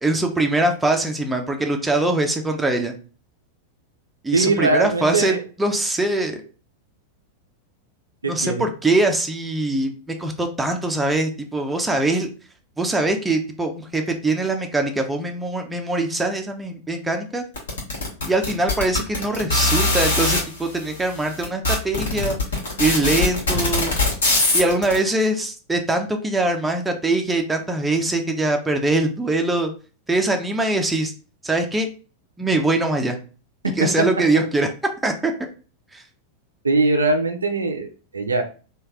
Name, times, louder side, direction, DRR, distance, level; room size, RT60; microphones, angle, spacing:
voice 1, 0.0-2.9 4.2-6.4 8.3-12.3 12.8-17.4 18.3-22.4 22.8-23.9 24.5-29.7 30.1-31.1 31.4-31.9 32.4-33.2 33.8-34.7 35.0-35.3 35.9-36.0, right 2 dB, 10° right, 3 dB, 0.6 m, -22 dB
voice 2, 4.3-5.4 8.2-8.7 36.6-38.4, right 3 dB, 75° right, 5 dB, 0.5 m, -21 dB
sound 1, 17.6-20.4 21.1-21.2 21.4-24.9, left 2 dB, 65° left, 1.4 m, -21 dB
3.2 x 2.5 x 3.6 m, 0.37 s
figure-of-eight pair, 90°, 0 cm